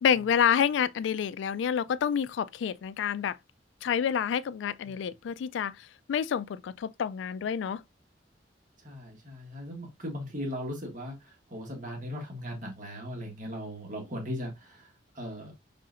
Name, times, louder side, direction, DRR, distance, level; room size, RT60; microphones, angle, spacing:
voice 1, 0.0-3.4 3.8-7.8, left 8 dB, 85° left, 0.3 m, -28 dB
voice 2, 8.8-15.5, equal, 45° right, 1.5 m, -38 dB
5.7 x 3.8 x 2.5 m
head